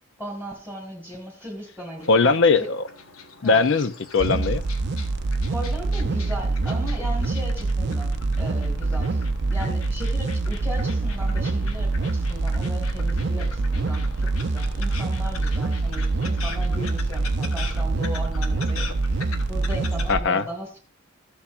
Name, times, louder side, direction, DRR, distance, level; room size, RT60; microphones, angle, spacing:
voice 1, 0.2-2.4 3.4-3.6 5.5-20.8, equal, 5° left, 1.9 m, -37 dB
sound 1, 2.0-20.1, left 5 dB, 90° left, 1.2 m, -41 dB
voice 2, 2.1-2.8 3.4-4.6 20.1-20.5, left 4 dB, 55° left, 0.6 m, -20 dB
sound 2, 4.2-20.2, right 3 dB, 50° right, 0.5 m, -25 dB
14.0 x 7.1 x 2.5 m
head